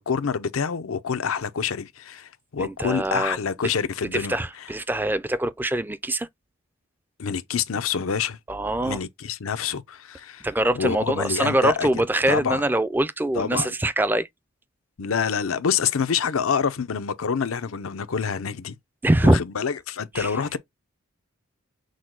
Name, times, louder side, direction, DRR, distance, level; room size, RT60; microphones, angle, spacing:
voice 1, 0.0-4.4 7.2-8.4 8.8-10.5 10.7-11.9 12.3-12.6 13.4-13.7 15.0-18.8 19.2-20.6, left 6 dB, 85° left, 0.6 m, -27 dB
voice 2, 2.6-3.4 4.1-6.3 8.5-9.0 10.4-14.3 19.0-19.4 20.1-20.3, right 1 dB, 10° right, 0.3 m, -23 dB
6.3 x 2.2 x 3.7 m
head